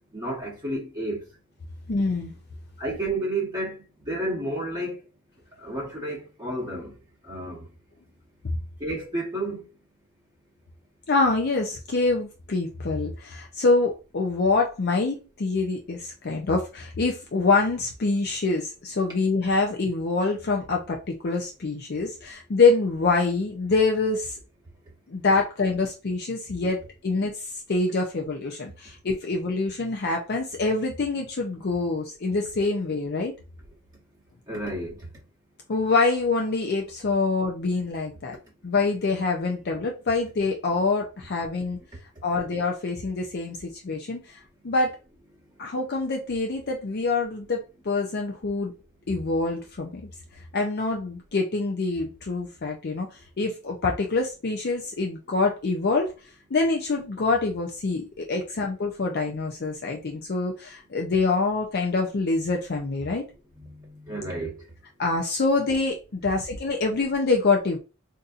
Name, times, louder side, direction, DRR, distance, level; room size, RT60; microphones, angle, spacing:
voice 1, 0.1-1.2 2.8-5.0 5.6-6.9 7.3-7.7 8.8-9.6 34.5-35.0 63.6-64.6, right 1 dB, 20° right, 1.0 m, -31 dB
voice 2, 1.9-2.4 11.1-24.4 25.1-33.3 35.7-38.4 38.6-41.8 42.2-44.4 44.6-45.0 45.6-48.7 49.1-50.1 50.5-56.1 56.5-63.2 65.0-67.8, left 3 dB, 50° left, 0.5 m, -25 dB
4.0 x 2.6 x 2.4 m
head